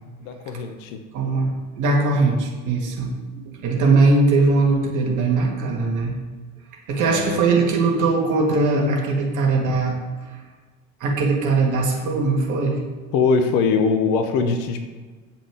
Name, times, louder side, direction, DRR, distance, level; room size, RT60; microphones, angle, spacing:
voice 1, 0.2-1.0 7.0-7.4 8.7-9.0 13.1-14.8, left 5 dB, 50° left, 6 dB, 1.2 m, -22 dB
voice 2, 1.1-6.2 6.9-10.3 11.0-12.8, right 3 dB, 45° right, 0 dB, 2.4 m, -20 dB
8.8 x 7.7 x 5.0 m, 1.4 s
figure-of-eight pair, 70°, 41 cm